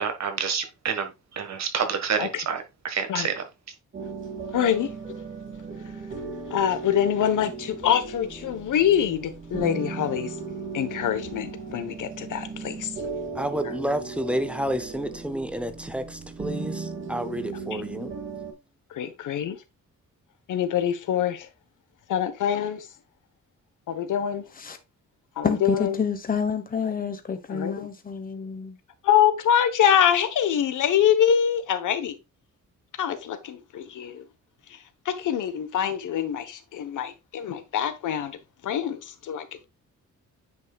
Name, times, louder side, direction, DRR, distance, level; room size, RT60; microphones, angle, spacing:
voice 1, 0.0-3.5, right 6 dB, 60° right, 1.5 m, -28 dB
sound 1, 3.9-18.5, right 4 dB, 40° right, 2.4 m, -36 dB
voice 2, 4.5-4.9 6.5-10.3 10.7-12.9 17.7-17.8 18.9-19.6 20.5-21.5 22.1-22.9 23.9-24.4 25.4-25.9 27.5-27.9 29.0-32.2 33.0-34.2 35.0-38.4 38.6-39.7, left 9 dB, 75° left, 1.1 m, -24 dB
voice 3, 13.3-18.1, equal, 5° right, 0.6 m, -30 dB
voice 4, 25.4-28.8, left 6 dB, 30° left, 1.1 m, -28 dB
9.4 x 5.5 x 2.3 m
wide cardioid pair, 150°, 31 cm